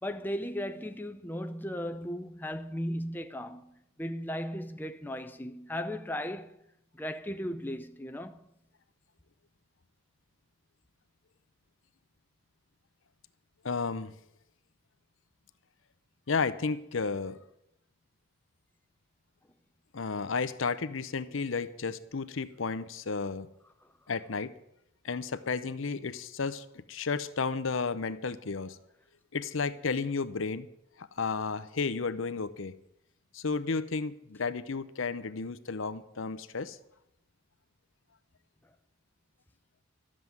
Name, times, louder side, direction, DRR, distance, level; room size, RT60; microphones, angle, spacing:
voice 1, 0.0-6.5 6.9-8.4, equal, 10° left, 0.6 m, -36 dB
voice 2, 13.6-14.1 16.3-17.4 19.9-23.5 24.1-24.5 25.0-28.8 29.3-30.7 31.0-32.7 33.3-36.8, left 4 dB, 70° left, 0.7 m, -32 dB
12.5 x 7.5 x 9.5 m
head